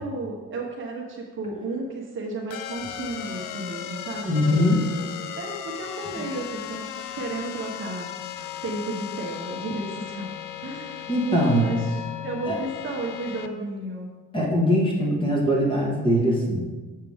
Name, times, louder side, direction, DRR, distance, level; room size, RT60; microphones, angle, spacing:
voice 1, 0.0-4.6 5.4-6.8 7.1-14.1, right 2 dB, 40° right, -1 dB, 1.0 m, -33 dB
sound 1, 2.5-13.5, left 11 dB, 65° left, 0.5 m, -36 dB
voice 2, 4.3-4.8 11.1-11.8 12.5-12.6 14.3-16.7, equal, 15° left, -3 dB, 1.5 m, -22 dB
7.1 x 6.6 x 3.5 m, 1.3 s
cardioid pair, 170°, 33 cm